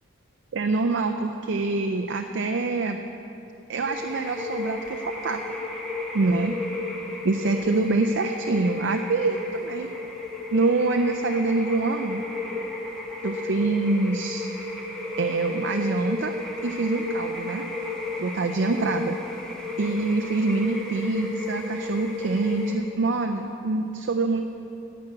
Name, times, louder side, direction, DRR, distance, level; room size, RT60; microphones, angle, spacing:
voice 1, 0.5-3.0 3.7-5.4 6.1-6.6 7.2-9.9 10.5-12.2 13.2-14.5 15.2-16.3 16.6-17.6 18.2-19.2 19.8-24.4, right 3 dB, 65° right, 5 dB, 0.4 m, -25 dB
sound 1, 3.9-22.7, left 2 dB, 5° left, 1.2 m, -33 dB
10.5 x 6.1 x 8.7 m, 2.9 s
head